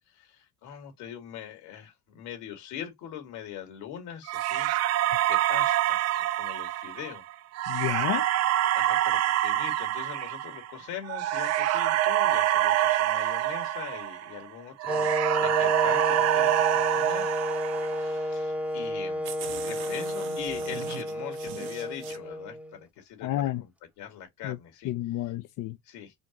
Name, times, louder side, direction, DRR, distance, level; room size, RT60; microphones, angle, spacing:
voice 1, 0.1-4.9 5.3-6.0 6.4-7.2 8.7-15.1 15.4-17.3 17.8-19.3 19.6-23.7 24.0-25.3 25.8-26.1, left 9 dB, 75° left, 2.3 m, -42 dB
sound 1, 4.3-14.5 14.8-18.2, right 13 dB, 45° right, 0.4 m, -26 dB
voice 2, 7.7-8.3 23.2-23.6 24.4-24.6 24.8-25.8, left 14 dB, 55° left, 0.5 m, -30 dB
Wind instrument woodwind instrument, 14.9-22.8, left 1 dB, 5° right, 0.7 m, -31 dB
sound 2, 15.8-18.2 18.8-18.9 19.2-22.2, right 10 dB, 65° right, 1.1 m, -43 dB
5.0 x 2.5 x 2.9 m
supercardioid pair, 95°, 39 cm